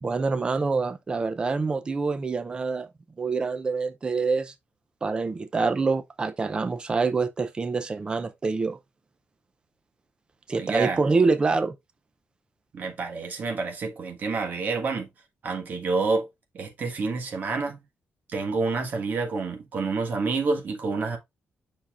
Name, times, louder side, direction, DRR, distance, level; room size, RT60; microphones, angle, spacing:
voice 1, 0.0-2.9 3.2-4.5 5.0-8.8 10.5-11.7, right 4 dB, 20° right, 0.5 m, -26 dB
voice 2, 10.5-11.0 12.7-15.1 15.4-16.3 16.5-17.8 18.3-21.2, right 4 dB, 45° right, 1.6 m, -28 dB
7.1 x 5.6 x 2.4 m
wide cardioid pair, 180°, 4 cm